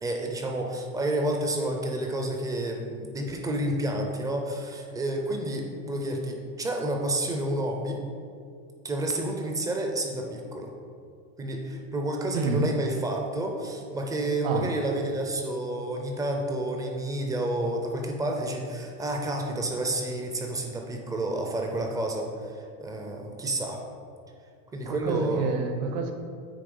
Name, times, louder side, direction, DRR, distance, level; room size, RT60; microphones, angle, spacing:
voice 1, 0.0-8.0 8.8-10.7 11.4-23.8 24.7-25.6, right 1 dB, 10° right, 2 dB, 0.4 m, -30 dB
voice 2, 12.3-12.7 14.4-14.7 24.8-26.1, right 4 dB, 60° right, 5 dB, 1.0 m, -28 dB
8.5 x 3.2 x 5.3 m, 2.3 s
supercardioid pair, 155°, 39 cm